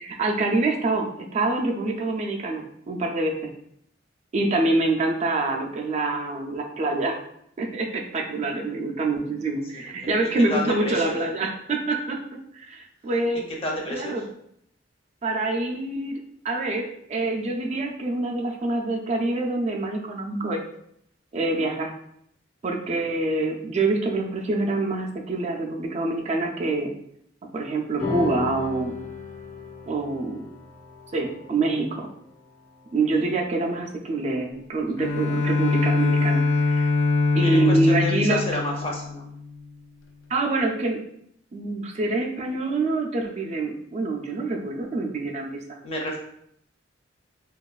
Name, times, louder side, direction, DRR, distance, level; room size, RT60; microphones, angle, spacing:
voice 1, 0.0-3.3 4.3-7.2 7.6-12.2 12.5-13.4 13.9-14.2 15.2-20.6 21.3-21.9 22.6-26.9 27.5-28.9 29.9-30.5 31.1-32.1 32.9-36.9 37.4-38.4 40.3-41.0 41.5-45.6, right 2 dB, 35° right, 2 dB, 0.3 m, -26 dB
voice 2, 9.7-10.1 10.5-11.2 13.6-14.2 33.2-33.3 35.8-36.0 37.3-39.2 45.8-46.2, left 1 dB, 30° left, -1 dB, 0.5 m, -30 dB
sound 1, 28.0-34.7, left 5 dB, 60° left, 0.8 m, -36 dB
Bowed string instrument, 35.0-39.6, left 4 dB, 80° left, 0.4 m, -23 dB
2.8 x 2.3 x 2.3 m, 0.72 s
head